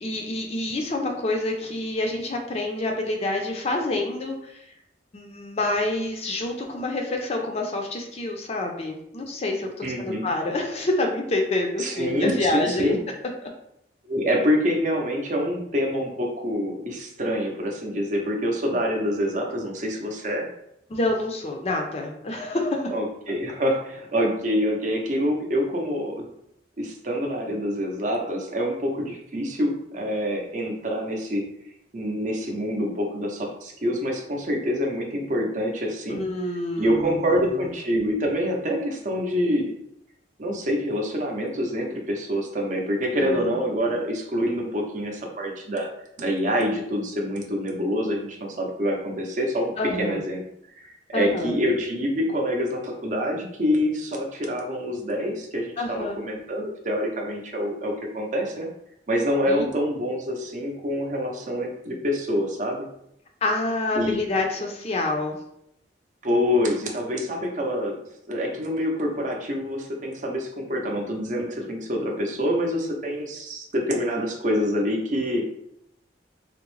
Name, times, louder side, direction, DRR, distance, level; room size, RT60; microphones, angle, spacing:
voice 1, 0.0-4.6 5.1-12.9 20.9-22.9 36.1-37.5 43.1-43.5 49.8-50.2 51.1-51.5 55.8-56.2 59.4-59.7 63.4-65.4, left 2 dB, 35° left, 2 dB, 0.4 m, -27 dB
voice 2, 9.8-10.3 11.8-13.0 14.1-20.5 22.9-26.3 26.8-31.4 31.9-36.2 36.8-39.7 40.4-45.9 46.2-49.7 50.0-50.4 50.8-58.7 59.1-62.9 64.0-64.2 66.2-68.0 68.3-75.5, equal, 45° right, 1 dB, 0.6 m, -26 dB
3.6 x 2.0 x 3.0 m, 0.76 s
head